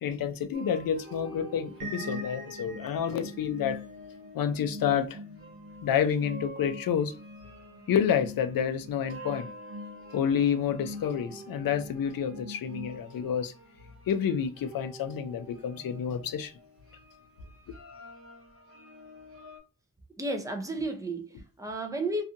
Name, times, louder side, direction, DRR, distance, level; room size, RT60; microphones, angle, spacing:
voice 1, 0.0-3.8 4.3-5.2 5.8-7.1 7.9-9.5 10.1-13.5 14.1-16.5, left 8 dB, 75° left, 0.5 m, -29 dB
sound 1, 0.5-19.6, right 1 dB, 40° right, 1.3 m, -49 dB
sound 2, 1.8-13.4, left 1 dB, 65° right, 0.5 m, -43 dB
voice 2, 20.2-22.2, right 2 dB, 10° right, 0.5 m, -32 dB
2.6 x 2.4 x 2.5 m
cardioid pair, 85°, 35 cm